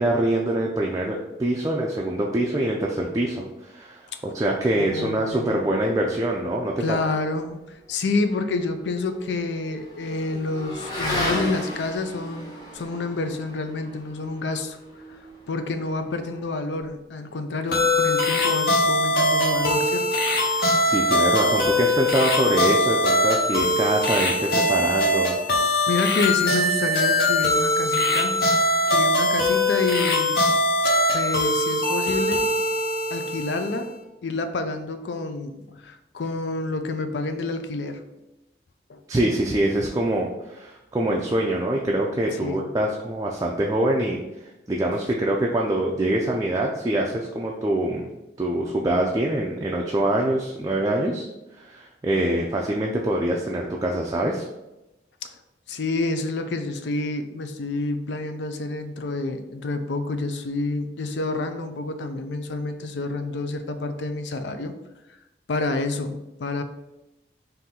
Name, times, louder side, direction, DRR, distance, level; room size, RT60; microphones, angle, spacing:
voice 1, 0.0-7.0 20.5-25.6 39.1-44.2 44.7-48.1 48.4-51.3 51.6-54.5, right 1 dB, 20° right, -1 dB, 0.3 m, -24 dB
voice 2, 4.8-5.6 6.8-14.8 15.1-15.2 15.5-20.1 25.9-28.4 28.9-30.4 31.1-32.5 33.1-33.9 34.2-38.0 38.9-39.0 42.4-42.7 55.2-55.3 55.7-64.7 65.5-66.6, left 3 dB, 90° left, 8 dB, 0.5 m, -28 dB
Motorcycle / Accelerating revving vroom, 8.1-16.9, left 1 dB, 25° left, 0.9 m, -35 dB
sound 1, 17.7-33.9, left 1 dB, 60° left, 0.8 m, -22 dB
3.7 x 2.6 x 4.2 m, 0.95 s
head